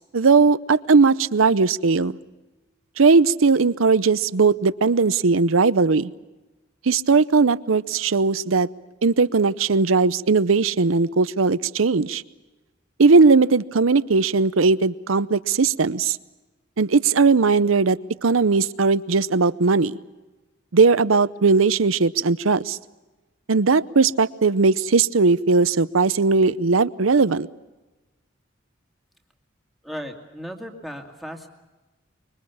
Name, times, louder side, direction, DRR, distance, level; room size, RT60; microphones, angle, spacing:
voice 1, 0.1-2.2 3.0-6.1 6.9-8.7 9.0-12.2 13.0-16.2 16.8-20.0 20.7-22.8 23.5-27.5, right 4 dB, 90° right, 16 dB, 0.7 m, -18 dB
voice 2, 29.8-31.5, equal, ahead, 2 dB, 2.3 m, -36 dB
25.0 x 23.0 x 7.2 m, 1.1 s
head